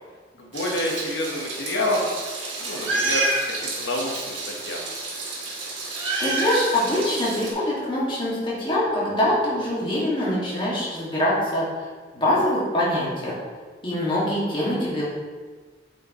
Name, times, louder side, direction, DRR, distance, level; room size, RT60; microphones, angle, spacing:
voice 1, 0.3-2.1 2.6-4.9, left 1 dB, 75° left, -2 dB, 1.3 m, -28 dB
Meow, 0.5-7.5, right 2 dB, 85° right, 1.9 m, -29 dB
voice 2, 6.2-11.9 12.1-13.3 13.8-15.0, left 1 dB, 25° left, -8 dB, 2.1 m, -24 dB
8.6 x 5.2 x 3.1 m, 1.5 s
head